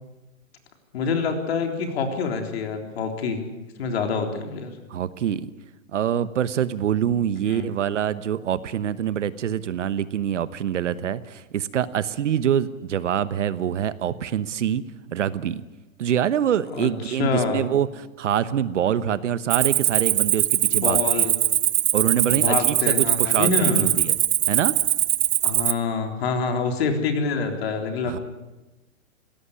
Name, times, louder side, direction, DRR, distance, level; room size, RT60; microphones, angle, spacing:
voice 1, 0.9-3.5 3.8-4.8 7.5-7.7 16.7-17.6 20.7-21.3 22.3-23.9 25.4-28.2, left 5 dB, 45° left, 5 dB, 3.7 m, -26 dB
voice 2, 4.9-5.5 5.9-14.8 15.1-15.6 16.0-21.3 21.9-24.1 24.5-24.8 28.0-28.2, right 9 dB, 60° right, 15 dB, 1.2 m, -25 dB
Cricket, 19.5-25.7, right 12 dB, 40° right, 0.9 m, -21 dB
20.0 x 17.5 x 9.9 m, 1.1 s
hypercardioid pair, 165°, 41 cm